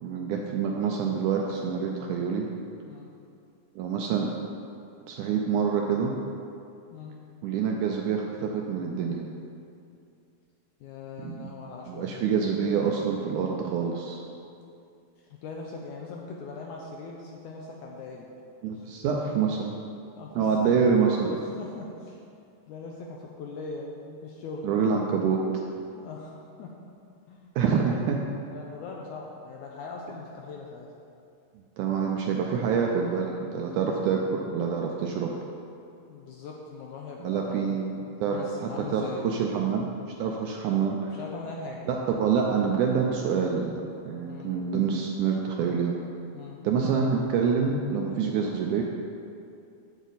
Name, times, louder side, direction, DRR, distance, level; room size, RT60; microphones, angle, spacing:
voice 1, 0.0-2.5 3.8-4.3 5.1-6.1 7.4-9.2 11.2-11.5 11.9-14.2 18.6-19.7 20.4-21.5 24.6-25.4 27.6-28.2 31.8-35.3 37.2-39.9 40.2-41.2 41.9-43.8 44.1-45.9 46.6-48.8, right 6 dB, 80° right, 0 dB, 1.8 m, -26 dB
voice 2, 10.8-12.3 15.4-18.3 18.7-18.8 20.2-20.8 21.2-22.2 22.7-25.1 26.0-26.8 27.3-27.5 28.5-30.9 33.5-33.8 36.1-39.7 41.1-41.9 44.3-44.6 46.3-46.6, left 4 dB, 80° left, -1 dB, 1.8 m, -41 dB
8.2 x 8.1 x 4.0 m, 2.5 s
omnidirectional pair, 4.0 m